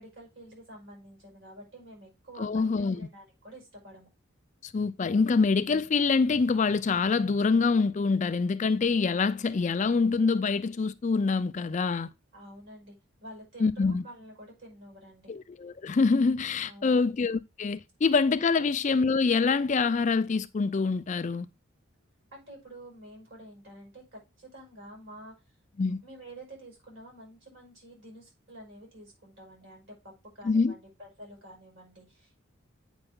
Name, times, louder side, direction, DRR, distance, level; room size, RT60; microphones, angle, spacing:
voice 1, 0.0-4.1 12.3-13.0 13.2-15.3 16.6-17.0 18.5-18.7 22.3-25.3 26.0-32.4, right 1 dB, 65° right, 5.6 m, -49 dB
voice 2, 2.4-3.1 4.6-12.1 13.6-14.0 15.3-21.5 25.8-26.0 30.4-30.7, left 4 dB, 35° left, 0.4 m, -25 dB
8.8 x 5.3 x 3.6 m
head